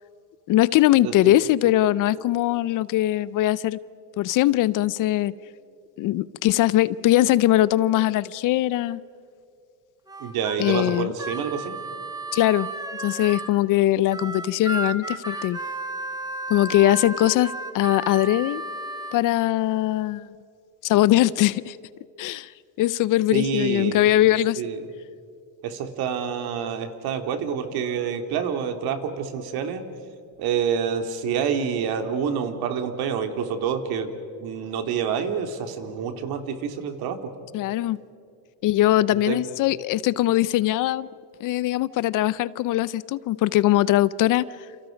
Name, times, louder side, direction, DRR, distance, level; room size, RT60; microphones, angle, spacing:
voice 1, 0.5-3.8 4.2-5.3 6.0-9.0 10.6-11.1 12.3-12.7 13.0-15.6 16.5-18.6 19.1-20.3 20.8-21.8 22.2-22.5 22.8-24.6 37.5-38.0 38.6-41.1 41.4-44.4, left 14 dB, 50° left, 19 dB, 0.6 m, -21 dB
Harmonica, 10.1-13.6 14.1-19.2, right 2 dB, 10° right, 1.8 m, -33 dB
voice 2, 10.2-11.7 23.3-24.0 24.6-24.8 25.6-29.8 30.4-34.1 34.4-37.2 39.1-39.4, right 7 dB, 60° right, 6 dB, 2.8 m, -27 dB
29.0 x 29.0 x 5.2 m, 2.4 s
supercardioid pair, 120°, 41 cm